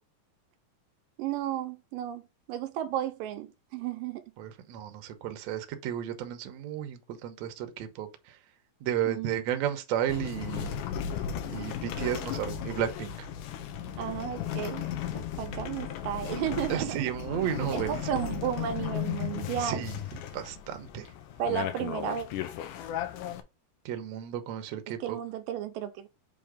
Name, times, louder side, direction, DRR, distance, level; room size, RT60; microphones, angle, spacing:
voice 1, 1.2-2.2 2.5-4.2 9.1-9.4 14.0-14.9 15.1-17.2 17.7-19.8 21.4-22.3 24.9-26.1, right 10 dB, 85° right, 2.3 m, -33 dB
voice 2, 4.4-8.4 8.8-10.8 11.5-13.3 16.7-18.2 19.6-20.0 20.3-21.1 23.9-25.2, right 10 dB, 70° right, 1.8 m, -33 dB
sound 1, 10.1-23.4, left 9 dB, 75° left, 2.2 m, -36 dB
7.6 x 2.9 x 5.0 m
omnidirectional pair, 4.0 m